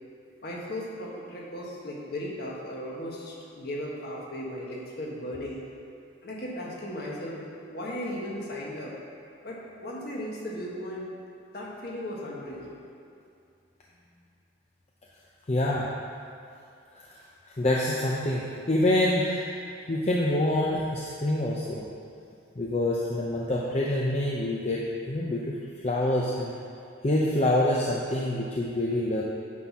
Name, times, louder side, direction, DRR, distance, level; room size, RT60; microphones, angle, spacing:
voice 1, 0.4-5.6 6.2-8.9 9.4-11.1 11.5-12.7, left 1 dB, 50° left, -4 dB, 1.5 m, -36 dB
voice 2, 15.5-15.9 17.6-18.4 18.7-21.9 22.6-25.5 25.8-26.5 27.0-29.2, left 1 dB, 35° left, -4 dB, 0.6 m, -26 dB
9.3 x 4.2 x 6.0 m, 2.5 s
head